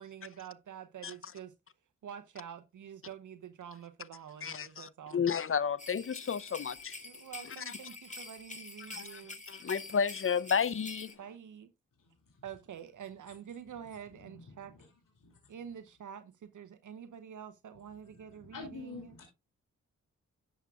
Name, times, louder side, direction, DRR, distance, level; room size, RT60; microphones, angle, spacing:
voice 1, 0.0-1.5 2.0-5.2 7.0-9.4 11.2-11.7 12.4-14.7 15.5-19.2, right 9 dB, 60° right, 0.8 m, -47 dB
voice 2, 4.4-6.9 8.9-9.2 9.5-11.1, left 6 dB, 40° left, 0.7 m, -32 dB
sound 1, 5.8-11.1, left 3 dB, 20° left, 2.5 m, -47 dB
voice 3, 18.4-19.3, left 3 dB, 70° left, 2.7 m, -45 dB
11.0 x 7.2 x 2.3 m
supercardioid pair, 40°, 33 cm